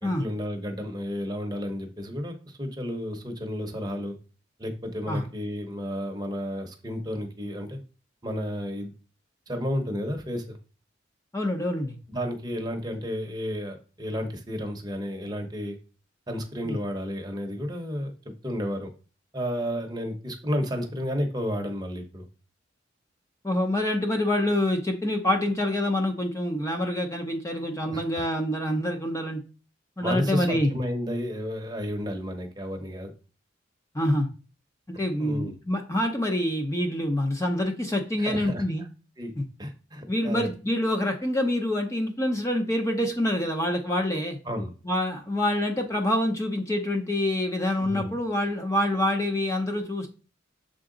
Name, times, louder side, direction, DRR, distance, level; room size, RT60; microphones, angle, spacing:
voice 1, 0.0-4.2 4.6-7.8 8.2-8.9 9.5-10.6 12.1-15.8 16.3-18.1 18.4-18.9 19.3-22.3 27.9-28.2 30.0-33.1 35.2-35.5 38.2-38.6 39.2-39.3 39.6-40.5 44.1-44.2 44.5-44.7 47.8-48.2, equal, 20° right, 4 dB, 0.8 m, -32 dB
voice 2, 11.3-12.0 16.6-16.8 23.4-29.4 30.0-30.7 33.9-34.3 35.0-38.8 39.4-39.5 40.1-44.4 44.8-50.1, left 1 dB, 15° left, 3 dB, 0.6 m, -26 dB
6.9 x 3.8 x 3.8 m, 0.36 s
head